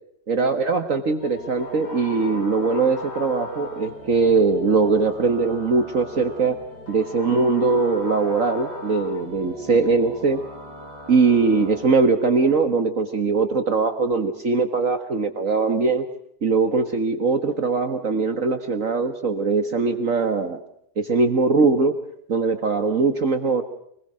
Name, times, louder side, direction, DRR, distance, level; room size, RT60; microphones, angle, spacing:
voice 1, 0.3-6.6 6.9-10.4 11.1-16.0 16.4-20.6 21.0-21.9 22.3-23.6, right 4 dB, 50° right, 8 dB, 1.8 m, -21 dB
sound 1, 1.2-11.9, left 1 dB, 75° left, 7.5 m, -37 dB
24.5 x 21.0 x 6.3 m, 0.72 s
omnidirectional pair, 1.8 m